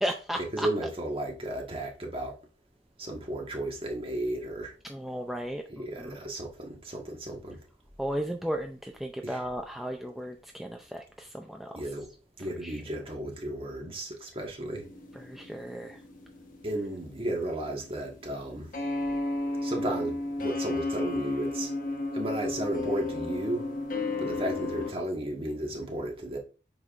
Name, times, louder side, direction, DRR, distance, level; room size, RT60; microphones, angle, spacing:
voice 1, 0.0-0.7 4.9-6.2 8.0-11.8 12.6-12.8 15.2-16.0, equal, ahead, 0.4 m, -35 dB
voice 2, 0.5-2.4 3.0-4.7 5.8-7.6 9.2-9.4 11.7-12.1 12.4-14.9 16.6-18.7 19.6-21.7 22.1-23.6 24.2-26.4, right 1 dB, 30° right, 1.4 m, -34 dB
sound 1, 14.7-24.9, left 2 dB, 50° left, 1.2 m, -33 dB
7.6 x 5.6 x 2.5 m
head